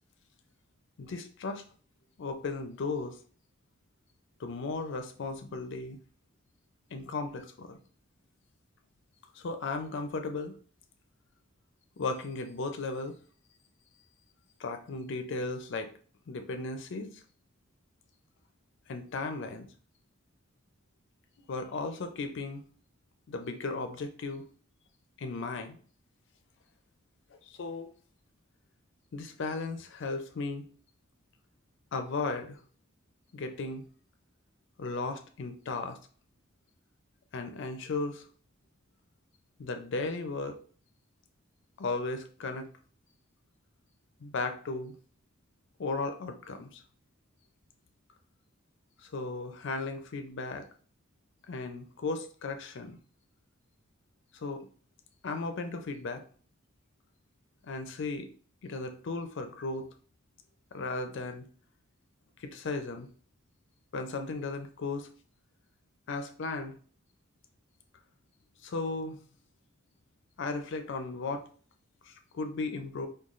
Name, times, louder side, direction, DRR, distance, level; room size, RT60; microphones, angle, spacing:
voice 1, 1.0-1.6 2.2-3.2 4.4-6.0 6.9-7.8 9.4-10.6 12.0-13.1 14.6-15.9 16.3-17.1 18.9-19.7 21.5-22.6 23.3-24.4 25.2-25.8 27.5-27.9 29.1-30.6 31.9-32.6 33.3-33.9 34.8-36.0 37.3-38.3 39.6-40.6 41.8-42.7 44.2-44.9 45.8-46.8 49.0-50.7 51.5-53.0 54.3-54.7 55.2-56.2 57.6-58.3 58.6-59.9 60.7-61.4 62.4-63.1 63.9-65.1 66.1-66.8 68.6-69.2 70.4-71.5 72.1-73.1, left 3 dB, 60° left, 6 dB, 0.4 m, -35 dB
3.7 x 2.3 x 3.0 m, 0.43 s
head